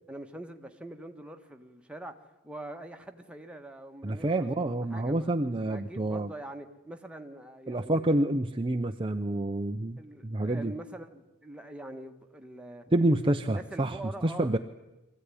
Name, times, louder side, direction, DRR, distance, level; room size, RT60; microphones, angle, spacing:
voice 1, 0.1-2.1 2.4-5.3 5.7-8.1 10.0-12.9 13.5-14.6, right 1 dB, 5° right, 1.5 m, -44 dB
voice 2, 4.0-6.3 7.7-10.7 12.9-14.0 14.2-14.6, right 1 dB, 25° right, 0.7 m, -28 dB
24.0 x 15.5 x 9.9 m
head